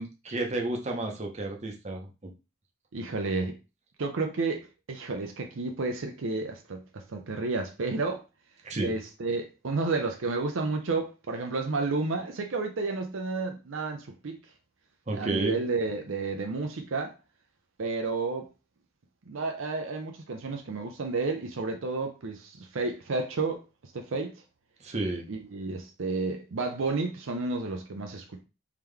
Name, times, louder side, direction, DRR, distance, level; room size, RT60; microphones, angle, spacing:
voice 1, 0.0-2.3 8.6-8.9 15.1-15.6 24.8-25.3, right 2 dB, 30° right, 0.8 m, -31 dB
voice 2, 2.9-3.6 4.0-8.2 8.8-14.4 15.1-17.1 17.8-18.5 19.3-23.6 23.9-24.3 25.3-28.4, right 3 dB, 65° right, 0.6 m, -31 dB
3.6 x 3.0 x 3.3 m
head